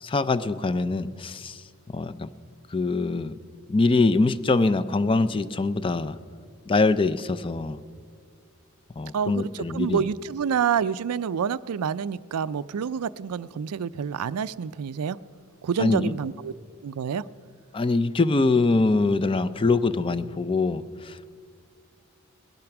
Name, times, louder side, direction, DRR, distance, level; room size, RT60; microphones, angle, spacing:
voice 1, 0.0-1.6 1.9-2.3 2.7-3.3 3.7-6.2 6.7-7.8 9.0-10.0 15.8-16.1 17.7-21.3, left 3 dB, 25° left, 15 dB, 0.4 m, -23 dB
voice 2, 9.1-15.2 15.6-16.5 16.8-17.2, right 7 dB, 85° right, 17 dB, 0.4 m, -28 dB
19.0 x 12.0 x 5.9 m, 2.1 s
head